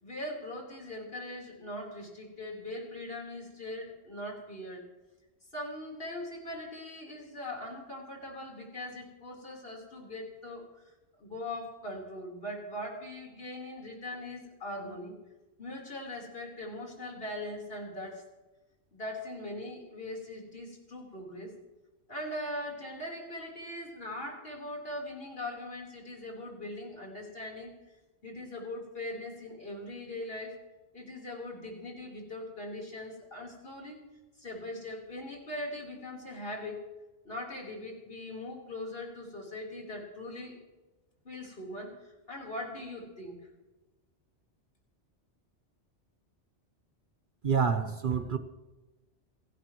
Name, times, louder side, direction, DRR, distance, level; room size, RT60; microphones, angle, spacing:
voice 1, 0.0-4.9 5.5-10.7 11.2-15.1 15.6-18.2 18.9-21.5 22.1-27.7 28.2-30.6 30.9-34.0 34.4-36.8 37.2-40.6 41.2-43.4, left 1 dB, 55° left, 4.2 m, -40 dB
voice 2, 47.4-48.4, right 6 dB, 50° right, 0.9 m, -27 dB
28.5 x 12.0 x 3.1 m
omnidirectional pair, 1.2 m